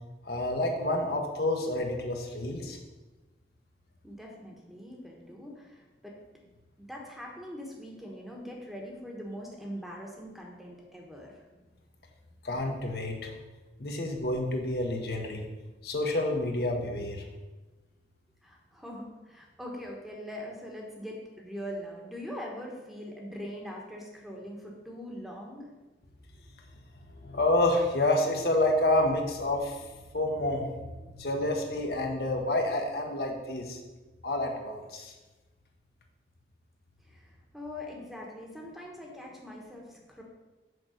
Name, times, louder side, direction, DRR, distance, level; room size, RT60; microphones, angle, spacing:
voice 1, 0.2-2.8 12.4-13.3 13.8-15.5 15.8-17.2 27.2-33.8 34.2-35.1, left 1 dB, 60° left, 2 dB, 1.0 m, -29 dB
voice 2, 4.0-6.1 6.8-11.4 18.4-25.8 37.0-40.2, equal, ahead, -1 dB, 1.1 m, -42 dB
6.6 x 4.7 x 6.4 m, 1.2 s
head